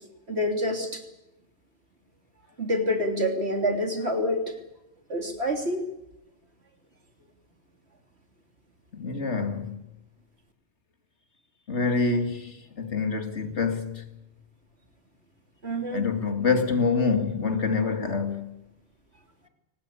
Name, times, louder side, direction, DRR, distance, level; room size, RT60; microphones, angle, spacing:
voice 1, 0.3-1.0 2.6-4.5 5.1-5.8 15.6-16.1, equal, 60° right, 3.5 m, -27 dB
voice 2, 8.9-9.8 11.7-14.0 15.9-18.5, left 4 dB, 70° left, 2.6 m, -26 dB
24.0 x 19.0 x 8.5 m
omnidirectional pair, 1.2 m